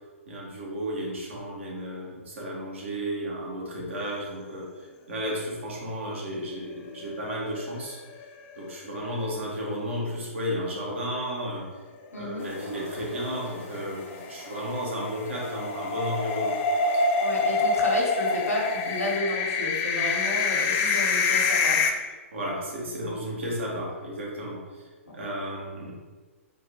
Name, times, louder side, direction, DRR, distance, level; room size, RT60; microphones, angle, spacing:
voice 1, 0.3-4.7 5.1-8.0 8.5-11.7 12.1-16.6 16.9-17.0 22.3-24.8 25.1-25.9, equal, 60° right, -3 dB, 1.4 m, -33 dB
sound 1, 7.0-7.9 8.2-8.3 8.6-8.7 12.9-21.9, left 4 dB, 25° left, 0.4 m, -26 dB
voice 2, 12.1-12.5 17.2-21.9, equal, 85° left, -4 dB, 1.2 m, -31 dB
sound 2, 12.4-19.2, left 2 dB, 55° left, 1.0 m, -46 dB
4.2 x 2.8 x 3.6 m, 1.4 s
figure-of-eight pair, 115°, 8 cm